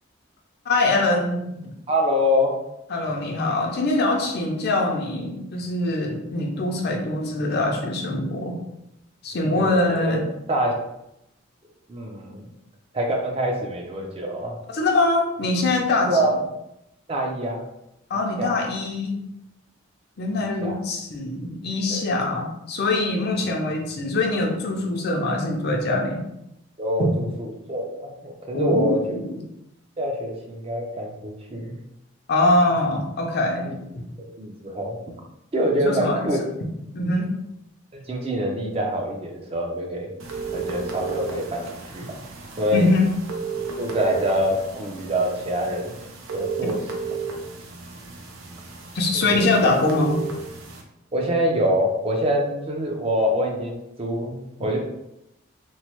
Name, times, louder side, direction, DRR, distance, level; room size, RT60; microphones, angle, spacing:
voice 1, 0.7-1.7 2.9-8.6 9.2-10.3 14.7-16.1 18.1-19.2 20.2-26.2 27.0-27.1 28.5-29.3 32.3-33.7 33.9-34.1 35.8-36.2 36.9-37.3 42.7-43.1 48.9-50.2, left 2 dB, 50° left, 2 dB, 0.5 m, -23 dB
voice 2, 1.9-2.5 9.5-10.2 10.5-10.7 11.9-12.5 12.9-14.6 16.1-16.3 17.1-17.6 18.1-18.6 20.6-20.7 21.9-22.1 26.8-29.0 30.0-31.8 33.6-33.7 34.2-35.0 35.5-36.4 37.9-40.1 40.5-41.6 41.9-42.1 42.6-42.9 43.8-45.9 46.3-46.8 49.1-49.2 51.1-54.3 54.6-54.8, equal, 30° right, 1 dB, 0.4 m, -25 dB
sound 1, 40.2-50.8, right 5 dB, 90° right, 0.5 m, -33 dB
3.0 x 2.0 x 2.9 m, 0.84 s
head